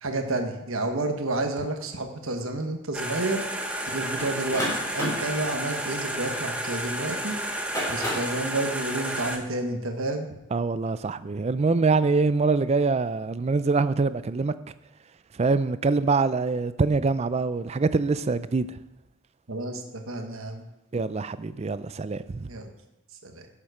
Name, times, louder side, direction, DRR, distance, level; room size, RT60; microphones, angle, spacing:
voice 1, 0.0-3.4 3.9-4.7 4.9-7.4 7.9-10.3 19.5-20.6 22.5-22.7 23.2-23.5, right 2 dB, 60° right, 1.2 m, -30 dB
sound 1, 2.9-9.4, right 1 dB, 5° right, 0.8 m, -32 dB
sound 2, 4.2-6.9 7.5-8.4, equal, 15° left, 3.8 m, -32 dB
voice 2, 10.5-14.5 15.4-18.7 20.9-22.5, right 4 dB, 30° right, 0.3 m, -24 dB
11.5 x 7.4 x 4.9 m
head